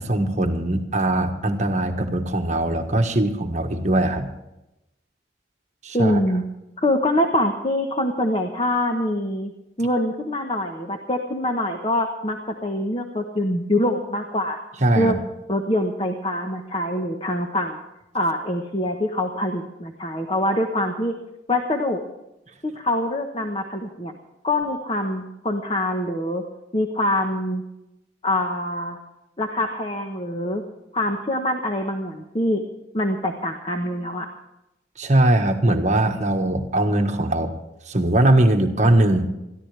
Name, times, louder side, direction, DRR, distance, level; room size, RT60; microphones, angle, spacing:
voice 1, 0.0-4.4 5.8-6.2 14.8-15.1 35.0-37.5 37.9-39.2, right 1 dB, 40° right, 5 dB, 1.3 m, -20 dB
voice 2, 5.9-6.4 6.8-9.5 9.8-14.6 14.9-15.2 15.5-17.8 18.1-21.1 21.5-22.0 22.6-24.1 24.4-26.4 26.7-27.6 28.2-29.0 29.4-30.6 30.9-32.6 32.9-34.3, left 1 dB, 30° left, 4 dB, 1.1 m, -24 dB
21.5 x 14.0 x 3.4 m, 0.92 s
head